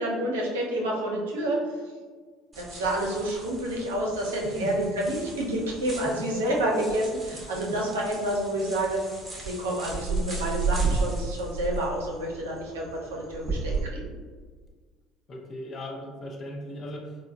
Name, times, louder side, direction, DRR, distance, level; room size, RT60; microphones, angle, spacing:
voice 1, 0.0-1.6 2.6-9.0 9.4-14.2, right 1 dB, 90° right, -2 dB, 0.5 m, -29 dB
sound 1, 2.5-13.8, right 4 dB, 25° right, 0.8 m, -34 dB
voice 2, 15.3-17.2, left 1 dB, 45° left, 0 dB, 0.6 m, -37 dB
3.9 x 2.1 x 2.3 m, 1.5 s
hypercardioid pair, 75°, 0 cm